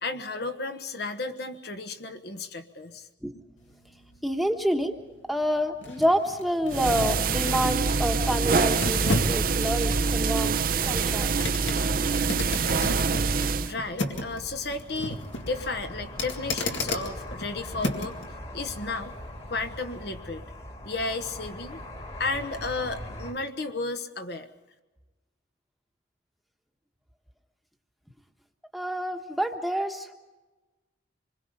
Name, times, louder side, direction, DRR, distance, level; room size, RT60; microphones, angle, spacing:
voice 1, 0.0-3.1 13.6-18.2 18.5-19.1 19.5-20.4 20.8-21.8 22.2-24.5, left 3 dB, 55° left, 8 dB, 1.2 m, -33 dB
sound 1, 3.6-18.3 18.7-18.8, left 1 dB, 75° left, 2.1 m, -35 dB
voice 2, 4.2-4.9 5.3-11.4 28.7-30.1, equal, ahead, 3 dB, 1.2 m, -28 dB
sound 2, 6.7-13.7, right 4 dB, 45° right, 0.6 m, -25 dB
sound 3, 13.2-23.3, left 1 dB, 30° left, 2.0 m, -41 dB
26.0 x 21.5 x 5.4 m, 1.2 s
head